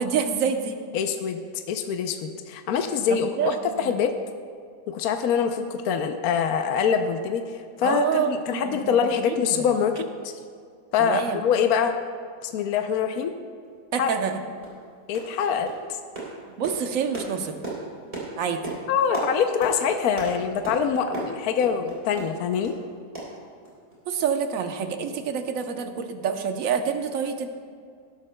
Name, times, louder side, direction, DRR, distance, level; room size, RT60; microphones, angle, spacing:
voice 1, 0.0-0.8 3.1-3.9 7.8-9.0 9.2-9.7 11.0-11.4 13.9-14.4 16.6-17.6 18.4-18.6 24.1-27.5, right 7 dB, 60° right, 6 dB, 1.1 m, -27 dB
voice 2, 0.9-4.1 4.9-10.3 10.9-11.9 12.4-13.3 13.9-14.1 15.1-15.7 18.9-22.8, left 7 dB, 70° left, 6 dB, 1.0 m, -24 dB
sound 1, 13.6-13.7 14.2-14.3 14.6-14.8 15.1-15.4 15.7-22.8 23.2-23.9 24.2-24.3 24.7-24.8, right 2 dB, 30° right, 3.7 m, -36 dB
18.5 x 12.0 x 2.2 m, 2.2 s
omnidirectional pair, 1.8 m